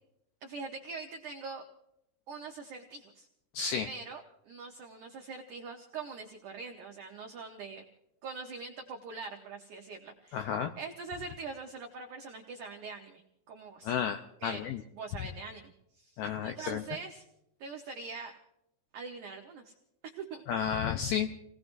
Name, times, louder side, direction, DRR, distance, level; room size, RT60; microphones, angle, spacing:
voice 1, 0.4-1.6 2.3-3.3 3.8-7.8 8.2-13.9 14.4-14.7 14.9-17.2 17.6-18.4 18.9-19.7 20.0-20.4, right 4 dB, 90° right, 2 dB, 1.7 m, -43 dB
voice 2, 3.5-3.9 10.3-10.7 13.8-14.8 16.2-16.8 20.5-21.3, left 8 dB, 85° left, 6 dB, 2.2 m, -32 dB
29.5 x 18.0 x 2.6 m, 0.85 s
omnidirectional pair, 5.3 m